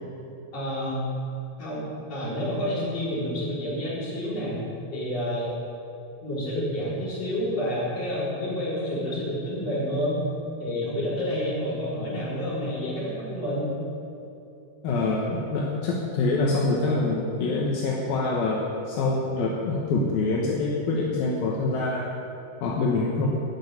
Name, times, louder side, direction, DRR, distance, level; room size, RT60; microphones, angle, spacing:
voice 1, 0.5-1.1 1.6-1.8 2.1-4.6 4.9-5.5 6.2-10.2 10.6-13.7, equal, 40° left, -7 dB, 5.2 m, -29 dB
voice 2, 14.8-22.1 22.6-23.3, left 3 dB, 75° left, -3 dB, 3.0 m, -25 dB
15.0 x 6.4 x 9.6 m, 2.7 s
omnidirectional pair, 4.3 m